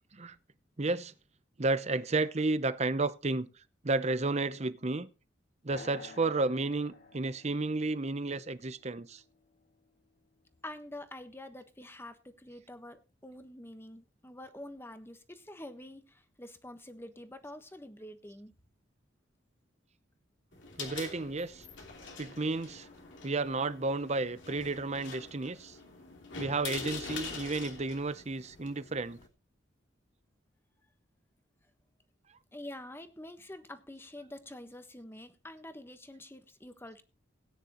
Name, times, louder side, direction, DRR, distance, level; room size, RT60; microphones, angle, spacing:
voice 1, 0.8-1.1 1.6-3.5 3.8-5.1 5.6-9.2 20.8-21.6 22.2-22.9 23.2-25.8 26.4-29.2, right 3 dB, 35° right, 0.8 m, -32 dB
sound 1, 5.7-9.6, left 4 dB, 55° left, 6.1 m, -52 dB
voice 2, 10.6-18.5 32.5-37.0, left 1 dB, 15° left, 1.3 m, -47 dB
sound 2, 20.5-29.3, left 4 dB, 85° left, 3.1 m, -45 dB
18.0 x 9.7 x 3.1 m
head